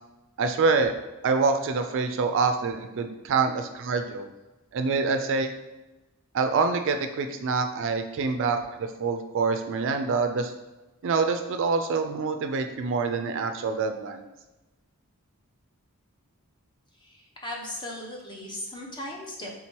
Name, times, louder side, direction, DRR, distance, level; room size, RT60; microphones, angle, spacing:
voice 1, 0.4-0.9 1.2-4.3 4.7-5.5 6.3-10.5 11.0-14.2, right 4 dB, 60° right, 7 dB, 0.4 m, -26 dB
voice 2, 17.0-19.5, left 1 dB, 20° left, -1 dB, 0.8 m, -37 dB
3.7 x 2.9 x 4.5 m, 1.1 s
head